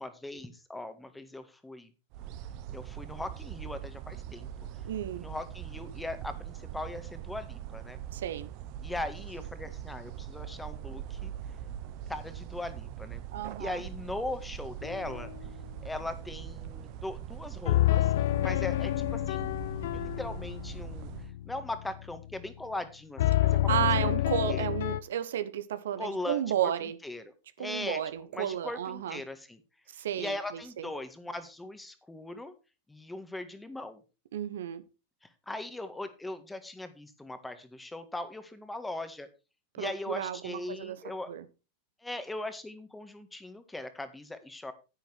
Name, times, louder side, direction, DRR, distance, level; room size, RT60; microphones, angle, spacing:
voice 1, 0.0-1.9 2.7-4.5 5.2-8.0 8.8-11.3 12.1-13.2 13.6-15.3 15.8-19.5 19.9-21.1 21.5-23.8 24.0-24.1 24.5-24.7 26.0-26.7 27.0-28.0 28.3-29.6 30.2-32.5 32.9-34.0 35.2-39.3 39.8-41.3 42.0-44.7, left 2 dB, 10° left, 1.7 m, -39 dB
sound 1, 2.1-21.3, right 11 dB, 50° right, 1.0 m, -42 dB
voice 2, 4.8-5.3 8.1-8.5 13.3-13.8 23.5-27.0 27.6-29.2 29.9-30.9 34.3-34.8 39.7-41.0 41.3-41.4, right 10 dB, 75° right, 1.0 m, -33 dB
sound 2, 14.8-15.4 17.7-22.5 23.2-25.0, left 14 dB, 70° left, 0.5 m, -29 dB
10.0 x 9.0 x 4.5 m
hypercardioid pair, 100°, 0 cm